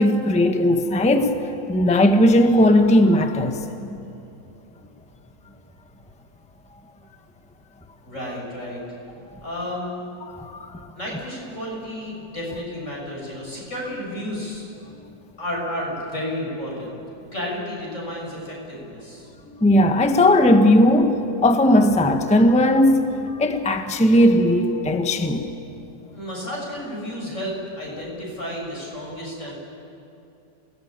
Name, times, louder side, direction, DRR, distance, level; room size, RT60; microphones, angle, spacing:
voice 1, 0.0-3.6 10.3-10.9 19.5-25.5, left 1 dB, 5° left, 1.0 m, -18 dB
voice 2, 8.1-8.8 9.4-10.0 11.0-14.7 15.4-16.9 17.3-19.3 26.1-29.6, left 1 dB, 40° left, 7.8 m, -32 dB
28.5 x 19.5 x 8.9 m
omnidirectional pair, 2.0 m